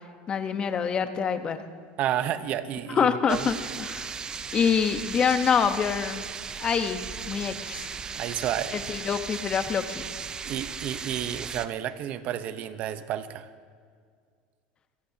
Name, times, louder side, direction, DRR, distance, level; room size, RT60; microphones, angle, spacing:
voice 1, 0.3-1.6 2.9-4.1 4.5-6.3 6.6-7.0 7.3-7.9 8.7-10.1, left 6 dB, 30° left, 8 dB, 1.1 m, -26 dB
voice 2, 2.0-3.5 8.1-8.8 10.4-13.5, right 11 dB, 50° right, 12 dB, 0.9 m, -31 dB
sound 1, 3.3-11.7, right 6 dB, 25° right, 0.7 m, -36 dB
23.5 x 18.5 x 2.9 m, 2.1 s
supercardioid pair, 120°, 3 cm